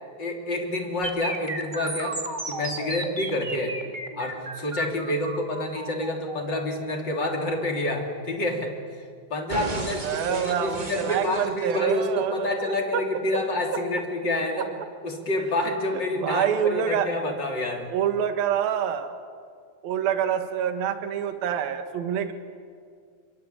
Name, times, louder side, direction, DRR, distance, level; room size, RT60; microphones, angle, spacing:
voice 1, 0.2-2.2 2.5-3.8 4.1-9.0 9.3-14.7 15.0-17.9, left 1 dB, 30° left, 1 dB, 3.5 m, -28 dB
sound 1, 1.0-9.0 9.5-12.0, right 2 dB, 40° right, 0.6 m, -35 dB
voice 2, 10.0-13.0 15.9-17.1 17.9-19.1 19.8-22.3, right 8 dB, 65° right, 7 dB, 3.3 m, -26 dB
29.5 x 23.5 x 8.7 m, 2.1 s
omnidirectional pair, 4.8 m